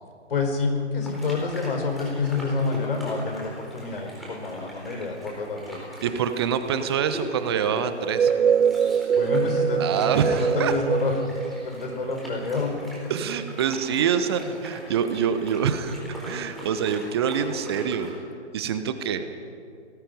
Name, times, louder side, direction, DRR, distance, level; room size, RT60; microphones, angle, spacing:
voice 1, 0.3-5.8 9.1-11.1 11.6-12.8, left 4 dB, 50° left, 4 dB, 4.6 m, -28 dB
sound 1, 1.0-18.1, equal, ahead, 4.0 m, -40 dB
voice 2, 6.0-8.3 9.8-10.7 13.1-18.2 18.5-19.3, right 7 dB, 20° right, 10 dB, 1.0 m, -26 dB
sound 2, 8.0-12.6, right 7 dB, 70° right, 0.5 m, -24 dB
26.5 x 20.0 x 5.3 m, 2.5 s
figure-of-eight pair, 140°, 35 cm